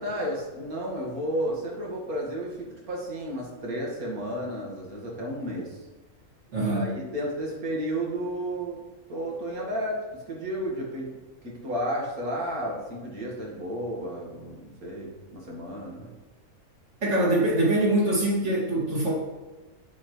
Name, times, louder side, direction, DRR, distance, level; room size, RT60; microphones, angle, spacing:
voice 1, 0.0-5.8 6.6-16.1, equal, 85° right, -2 dB, 2.4 m, -32 dB
voice 2, 6.5-7.0 17.0-19.1, right 1 dB, 55° right, -4 dB, 2.6 m, -24 dB
8.4 x 7.6 x 3.2 m, 1.2 s
omnidirectional pair, 1.5 m